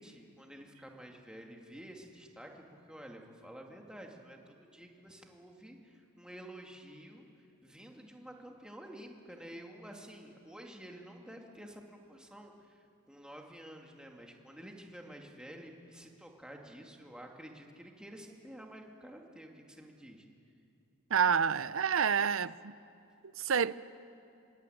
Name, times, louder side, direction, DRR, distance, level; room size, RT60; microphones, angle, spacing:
voice 1, 0.0-20.3, right 1 dB, 5° right, 2.4 m, -50 dB
voice 2, 21.1-22.7 23.4-23.7, right 7 dB, 65° right, 0.6 m, -28 dB
25.0 x 22.0 x 9.3 m
head